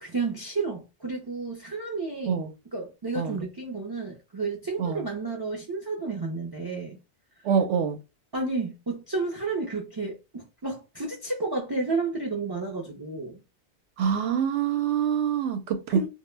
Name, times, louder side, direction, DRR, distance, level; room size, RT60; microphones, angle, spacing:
voice 1, 0.0-2.4 2.7-7.0 8.3-13.4 15.9-16.1, right 3 dB, 40° right, 0.3 m, -31 dB
voice 2, 7.4-8.0 14.0-16.1, right 7 dB, 90° right, 0.9 m, -25 dB
2.1 x 2.1 x 3.1 m
omnidirectional pair, 1.2 m